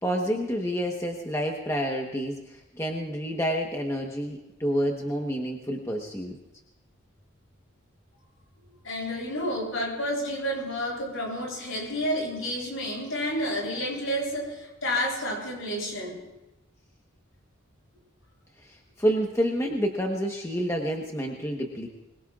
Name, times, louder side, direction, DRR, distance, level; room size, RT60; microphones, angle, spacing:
voice 1, 0.0-6.4 18.6-21.9, equal, 15° left, 1 dB, 1.1 m, -29 dB
voice 2, 8.8-16.2, equal, 70° left, -2 dB, 7.8 m, -30 dB
24.5 x 22.0 x 2.5 m, 1.0 s
head